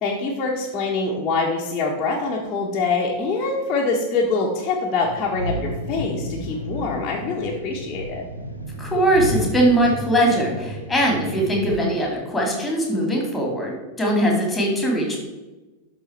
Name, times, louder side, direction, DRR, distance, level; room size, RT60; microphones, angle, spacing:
voice 1, 0.0-8.2, left 3 dB, 30° left, -4 dB, 1.3 m, -24 dB
sound 1, 5.0-11.7, equal, 85° left, 1.2 m, -31 dB
voice 2, 8.8-15.2, right 1 dB, 10° left, 0 dB, 2.5 m, -21 dB
12.0 x 4.2 x 4.4 m, 1.1 s
figure-of-eight pair, 90°, 0 cm